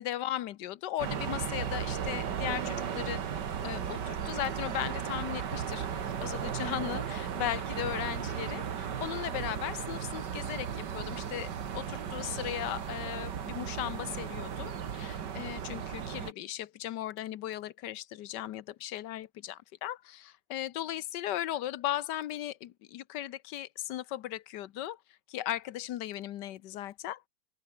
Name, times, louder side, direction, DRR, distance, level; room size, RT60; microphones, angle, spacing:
voice 1, 0.0-3.2 3.6-5.9 6.2-25.0 25.3-27.2, left 13 dB, 75° left, 1.4 m, -37 dB
sound 1, 1.0-16.3, right 8 dB, 70° right, 2.1 m, -36 dB
omnidirectional pair, 1.9 m